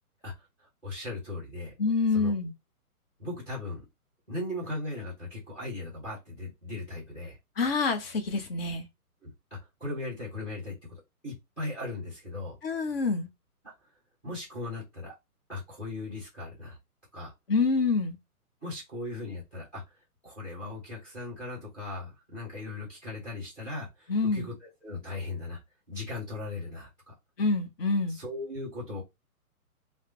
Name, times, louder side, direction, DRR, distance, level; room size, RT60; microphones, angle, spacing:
voice 1, 0.2-1.7 2.1-2.3 3.2-3.8 4.3-7.4 9.2-9.3 9.8-12.5 14.2-15.1 15.5-16.8 17.1-17.3 18.6-19.8 20.2-25.6 25.9-27.1 28.1-29.0, left 2 dB, 5° left, 0.5 m, -38 dB
voice 2, 1.8-2.5 7.6-8.9 12.6-13.3 17.5-18.2 24.1-24.5 27.4-28.2, left 4 dB, 40° left, 0.7 m, -27 dB
3.1 x 2.0 x 2.8 m
figure-of-eight pair, 135°, 45 cm